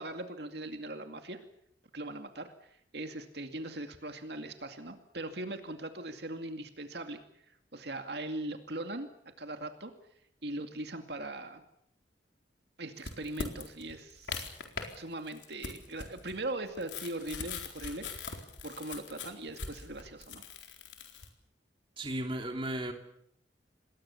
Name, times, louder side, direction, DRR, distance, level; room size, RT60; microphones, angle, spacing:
voice 1, 0.0-1.4 1.9-2.5 2.9-7.2 7.7-9.1 9.4-9.9 10.4-11.6 12.8-14.5 15.0-20.5, right 2 dB, 65° right, 6 dB, 2.4 m, -40 dB
sound 1, 13.0-15.0 15.3-21.3, left 4 dB, 90° left, 4.2 m, -41 dB
voice 2, 22.0-22.9, right 1 dB, 30° right, 4 dB, 2.9 m, -35 dB
27.5 x 21.5 x 7.2 m, 0.74 s
head